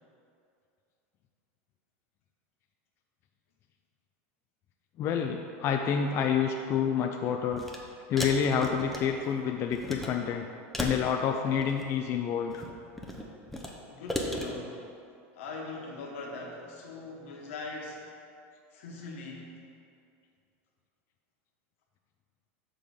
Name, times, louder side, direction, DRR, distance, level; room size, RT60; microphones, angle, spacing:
voice 1, 5.0-7.6 8.1-10.5 10.8-12.6, left 7 dB, 35° left, 3 dB, 0.4 m, -28 dB
sound 1, 7.5-7.8 8.2-9.3 9.7-10.1 10.7-11.9 12.4-13.7 14.1-14.5, left 1 dB, ahead, 0.8 m, -35 dB
voice 2, 13.8-14.9 15.3-18.1 18.7-19.6, left 3 dB, 80° left, -1 dB, 1.4 m, -41 dB
6.8 x 3.8 x 6.4 m, 2.5 s
supercardioid pair, 130°, 7 cm